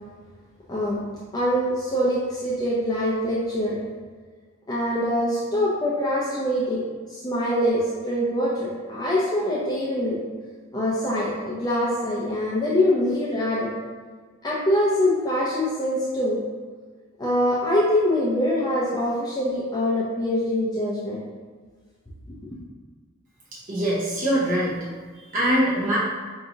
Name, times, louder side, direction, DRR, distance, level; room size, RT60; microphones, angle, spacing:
voice 1, 1.3-3.8 4.7-6.8 7.1-10.2 10.7-13.7 14.4-16.4 17.2-21.2, left 1 dB, 20° left, -7 dB, 0.5 m, -24 dB
voice 2, 23.7-24.8 25.3-26.0, right 1 dB, 40° right, -7 dB, 0.7 m, -22 dB
4.5 x 2.7 x 2.8 m, 1.5 s
head